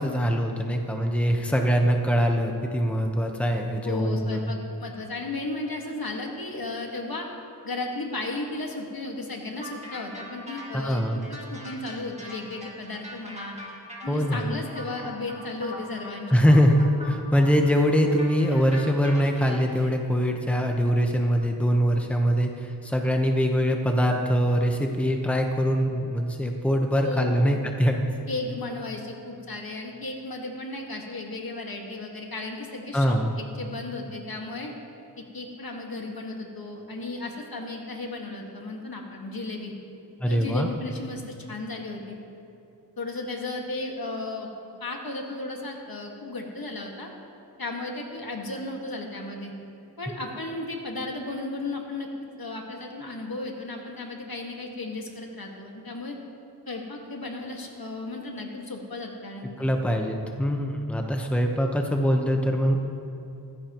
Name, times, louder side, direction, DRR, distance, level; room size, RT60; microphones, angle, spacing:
voice 1, 0.0-4.5 10.7-11.2 14.1-14.5 16.3-28.1 32.9-33.3 40.2-40.7 59.6-62.8, equal, 5° left, 2 dB, 1.1 m, -23 dB
voice 2, 3.8-7.3 7.6-11.2 11.5-13.6 14.0-16.4 27.0-27.6 28.3-34.7 35.2-39.7 40.2-42.2 43.0-44.5 44.8-47.1 47.6-49.5 50.0-52.1 52.4-56.2 56.7-59.7, left 2 dB, 60° left, 0 dB, 2.0 m, -35 dB
sound 1, 9.6-19.9, equal, 15° right, 2.3 m, -42 dB
17.5 x 15.0 x 3.1 m, 2.7 s
wide cardioid pair, 60°, 40 cm